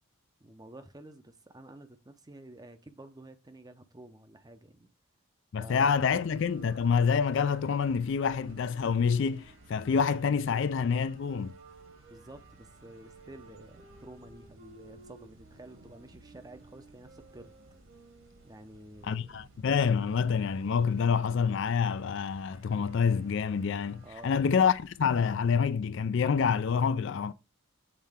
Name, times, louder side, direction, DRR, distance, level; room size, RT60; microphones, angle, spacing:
voice 1, 0.4-4.9 5.6-6.2 12.1-17.5 18.4-19.5 24.0-24.4, right 1 dB, 15° right, 0.6 m, -50 dB
voice 2, 5.5-11.5 19.0-27.3, left 6 dB, 55° left, 0.3 m, -27 dB
sound 1, 6.0-25.6, right 2 dB, 65° right, 2.0 m, -57 dB
sound 2, 6.5-12.3 13.0-18.6, right 2 dB, 50° right, 1.1 m, -56 dB
7.4 x 4.2 x 3.5 m
head